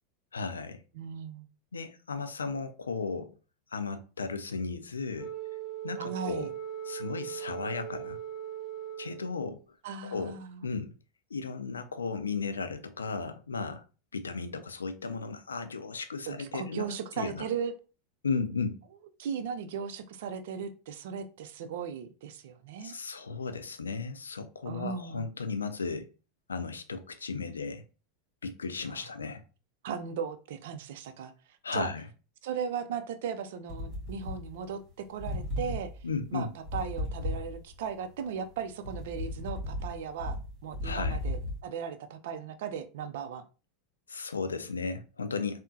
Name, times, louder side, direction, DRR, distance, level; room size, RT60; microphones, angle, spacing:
voice 1, 0.3-0.8 1.7-3.3 3.7-5.3 5.8-6.5 6.9-8.2 9.0-9.6 10.0-10.9 11.3-13.8 14.1-17.4 18.2-18.8 22.8-26.1 26.5-27.8 28.4-29.4 31.6-32.0 36.0-36.5 40.8-41.2 44.1-45.6, left 4 dB, 90° left, 0.4 m, -35 dB
voice 2, 0.9-1.5 6.0-6.5 9.8-10.6 16.3-17.7 19.2-22.9 24.7-25.3 28.9-29.0 29.8-31.3 31.7-31.9 32.4-35.9 36.3-40.4 40.6-43.4, right 7 dB, 65° right, 0.4 m, -37 dB
Wind instrument woodwind instrument, 5.2-9.5, right 10 dB, 5° left, 1.2 m, -39 dB
sound 1, 33.7-34.9 35.2-37.9 38.3-41.6, left 1 dB, 40° right, 1.6 m, -35 dB
3.5 x 2.1 x 2.7 m
hypercardioid pair, 90°, 0 cm